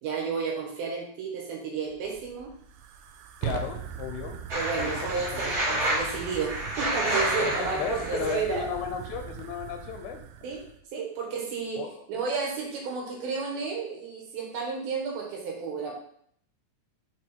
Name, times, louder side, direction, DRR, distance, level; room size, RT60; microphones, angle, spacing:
voice 1, 0.0-2.5 4.5-8.6 10.4-10.6 10.9-11.8 12.1-15.9, right 5 dB, 75° right, -1 dB, 3.2 m, -32 dB
Fire, 1.9-10.8, right 9 dB, 90° right, 2.5 m, -40 dB
voice 2, 3.4-4.4 4.8-5.6 7.4-10.5 11.8-12.1, left 8 dB, 90° left, 4 dB, 2.5 m, -35 dB
sound 1, 4.5-8.3, right 1 dB, 35° right, 2.7 m, -29 dB
6.2 x 4.3 x 4.4 m, 0.65 s
omnidirectional pair, 4.4 m